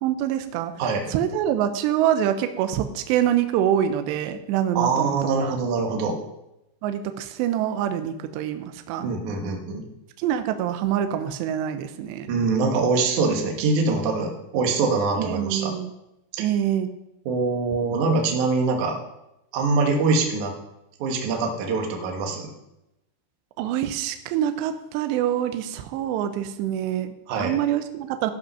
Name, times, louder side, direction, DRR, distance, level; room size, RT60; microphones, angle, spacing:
voice 1, 0.0-0.7 1.1-5.6 6.8-9.1 10.2-12.3 15.2-15.9 16.4-16.9 23.6-28.3, right 10 dB, 80° right, 8 dB, 2.5 m, -25 dB
voice 2, 4.7-6.2 9.0-9.8 12.3-15.7 16.3-16.4 17.3-19.0 19.5-20.5 21.0-22.5 27.3-27.5, right 4 dB, 65° right, 2 dB, 2.0 m, -23 dB
14.0 x 5.6 x 5.6 m, 0.88 s
omnidirectional pair, 5.6 m